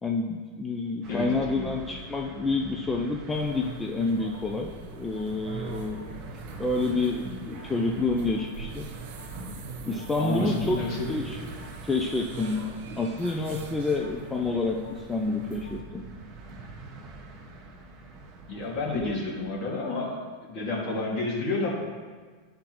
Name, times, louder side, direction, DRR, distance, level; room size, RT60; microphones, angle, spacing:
voice 1, 0.0-6.2 6.6-8.9 9.8-10.8 11.1-11.4 11.8-12.7 13.0-16.0 18.9-19.2, left 3 dB, 15° left, 0 dB, 0.6 m, -28 dB
sound 1, 1.0-19.4, right 2 dB, 40° right, 1.1 m, -44 dB
voice 2, 1.1-1.7 10.2-11.1 18.5-21.7, left 2 dB, 55° left, -4 dB, 2.2 m, -30 dB
sound 2, 3.3-15.8, right 4 dB, 70° right, 1.1 m, -42 dB
10.5 x 5.1 x 3.1 m, 1.5 s
hypercardioid pair, 110°, 0 cm